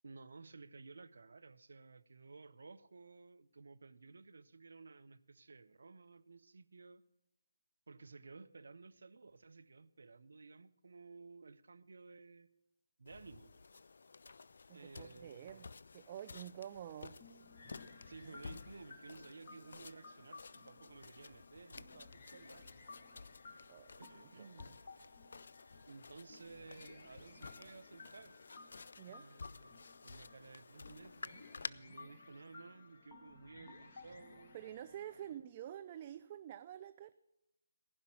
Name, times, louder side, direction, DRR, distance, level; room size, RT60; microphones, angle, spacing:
voice 1, 0.0-7.0 7.9-12.5 13.0-13.5 14.7-15.8 18.0-22.7 24.0-24.8 25.9-28.4 29.1-34.6 35.3-35.4, right 4 dB, 65° right, 0.6 m, -56 dB
sound 1, 13.1-31.7, left 4 dB, 60° left, 0.3 m, -53 dB
voice 2, 14.7-15.7 15.9-17.2 23.7-24.0 24.4-24.5 29.0-29.3 34.5-37.1, right 11 dB, 30° right, 0.3 m, -48 dB
sound 2, 17.2-35.4, left 3 dB, 40° left, 1.3 m, -58 dB
15.0 x 5.6 x 8.7 m
figure-of-eight pair, 150°, 0 cm